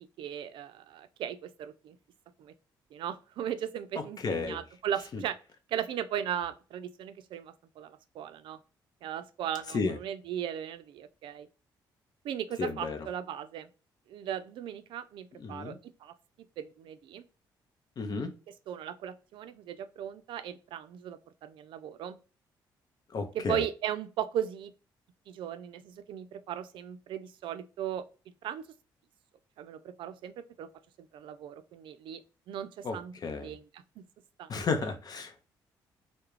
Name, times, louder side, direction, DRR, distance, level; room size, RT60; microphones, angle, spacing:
voice 1, 0.2-2.0 2.4-2.5 2.9-5.4 5.7-8.6 9.0-11.5 12.2-13.7 14.1-15.7 16.0-16.1 16.6-17.2 18.7-22.2 23.3-24.7 25.3-28.0 28.4-28.6 29.6-30.7 31.0-32.2 32.5-33.1 33.4-34.0 34.4-34.9, right 10 dB, 75° right, 0.4 m, -37 dB
voice 2, 4.2-4.6 5.1-5.2 9.7-10.0 12.6-13.0 15.4-15.8 18.0-18.3 23.1-23.6 32.8-33.6 34.5-35.4, left 4 dB, 50° left, 0.6 m, -32 dB
2.3 x 2.1 x 3.0 m
cardioid pair, 80°, 9 cm